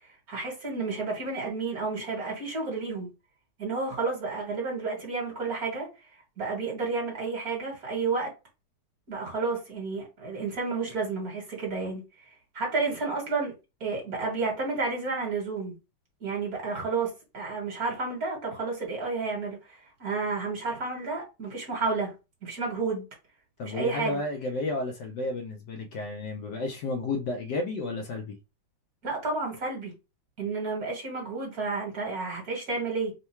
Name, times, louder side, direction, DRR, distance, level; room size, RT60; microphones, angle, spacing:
voice 1, 0.3-3.1 3.6-5.9 6.4-8.3 9.1-12.0 12.5-13.5 13.8-15.7 16.2-22.1 22.4-23.0 23.7-24.2 29.0-29.9 30.4-33.1, right 4 dB, 50° right, 1.8 m, -31 dB
voice 2, 23.6-28.4, left 2 dB, 70° left, 1.1 m, -32 dB
3.7 x 2.2 x 4.3 m
omnidirectional pair, 2.2 m